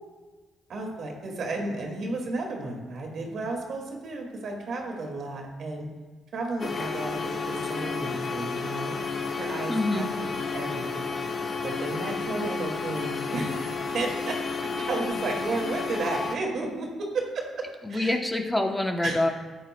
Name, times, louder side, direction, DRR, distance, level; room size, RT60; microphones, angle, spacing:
voice 1, 0.7-5.9 6.3-9.0 9.4-11.1 11.6-13.7 13.9-18.1 19.0-19.2, right 2 dB, 65° right, 1 dB, 2.1 m, -33 dB
sound 1, 6.6-16.3, left 4 dB, 45° left, 1.1 m, -31 dB
voice 2, 9.7-10.1 17.8-19.3, left 1 dB, 10° left, 3 dB, 0.9 m, -26 dB
13.5 x 9.2 x 2.2 m, 1.3 s
cardioid pair, 90°, 0 cm